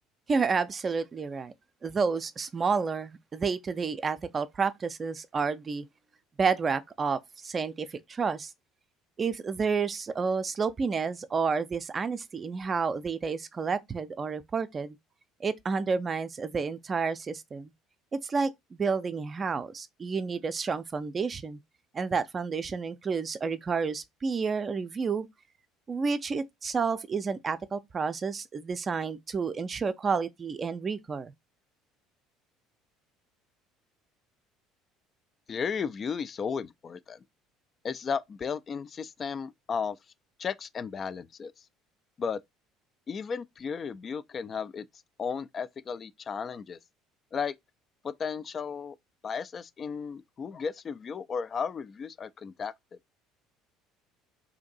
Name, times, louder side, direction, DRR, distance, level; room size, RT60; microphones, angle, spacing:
voice 1, 0.3-1.5 1.8-5.9 6.4-8.5 9.2-15.0 15.4-17.7 18.1-21.6 21.9-25.3 25.9-31.3, right 5 dB, 35° right, 0.4 m, -30 dB
voice 2, 35.5-37.2 37.8-40.0 40.4-41.5 42.2-42.4 43.1-44.9 45.2-46.8 47.3-47.5 48.0-49.0 49.2-53.0, left 6 dB, 40° left, 0.3 m, -34 dB
2.7 x 2.5 x 3.9 m
hypercardioid pair, 65°, 0 cm